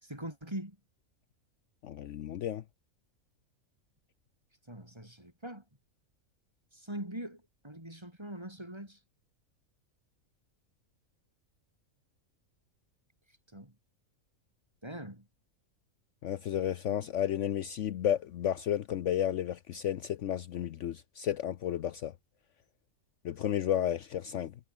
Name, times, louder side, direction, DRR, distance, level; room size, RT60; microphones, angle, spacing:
voice 1, 0.0-0.8 4.7-5.6 6.7-9.0 13.5-13.7 14.8-15.3, right 1 dB, 20° right, 5.0 m, -42 dB
voice 2, 1.8-2.6 16.2-22.1 23.2-24.5, left 10 dB, 65° left, 1.0 m, -32 dB
omnidirectional pair, 1.5 m